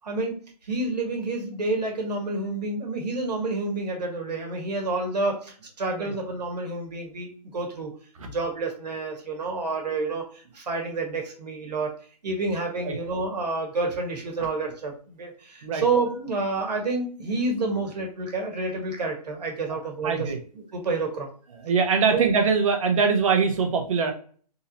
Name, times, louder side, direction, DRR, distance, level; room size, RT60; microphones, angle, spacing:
voice 1, 0.0-0.3 0.6-7.9 8.2-11.9 12.2-20.3 20.7-21.3 22.1-22.2, right 3 dB, 75° right, 2 dB, 1.6 m, -29 dB
voice 2, 20.0-20.4 21.6-24.1, right 5 dB, 50° right, 4 dB, 1.1 m, -22 dB
3.8 x 2.7 x 2.8 m, 0.43 s
hypercardioid pair, 155°, 21 cm